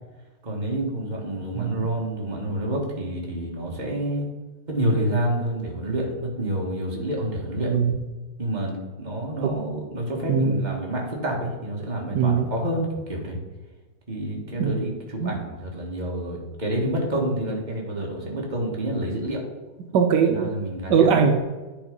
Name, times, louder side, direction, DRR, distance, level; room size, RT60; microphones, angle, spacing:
voice 1, 0.4-4.3 4.7-7.7 8.4-13.4 14.1-19.4 20.3-21.1, right 1 dB, 25° right, -2 dB, 1.8 m, -28 dB
voice 2, 10.3-10.6 12.1-12.5 14.6-14.8 15.2-15.3 19.9-20.5 20.9-21.4, right 6 dB, 75° right, 5 dB, 1.3 m, -20 dB
10.0 x 4.6 x 5.3 m, 1.2 s
omnidirectional pair, 1.9 m